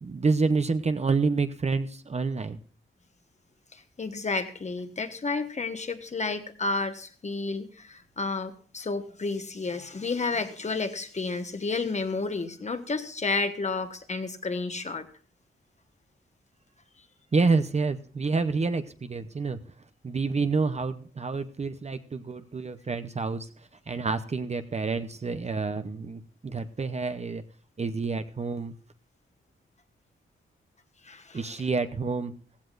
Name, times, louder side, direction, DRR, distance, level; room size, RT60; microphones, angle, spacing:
voice 1, 0.0-2.6 17.3-19.6 20.0-27.4 27.8-28.7 31.3-32.3, right 4 dB, 30° right, 10 dB, 0.7 m, -28 dB
voice 2, 3.7-15.0 31.0-31.4, left 3 dB, 35° left, 8 dB, 1.3 m, -31 dB
17.0 x 15.5 x 2.5 m, 0.43 s
wide cardioid pair, 175°, 21 cm